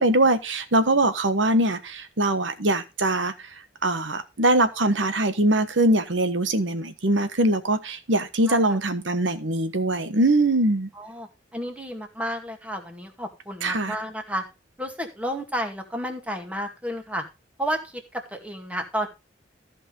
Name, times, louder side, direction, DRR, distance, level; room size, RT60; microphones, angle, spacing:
voice 1, 0.0-3.3 3.8-10.9 13.6-13.9, right 1 dB, 85° right, 1.4 m, -22 dB
voice 2, 11.0-14.4 14.8-17.2 17.6-19.1, equal, 5° right, 2.1 m, -31 dB
14.5 x 5.3 x 5.4 m
head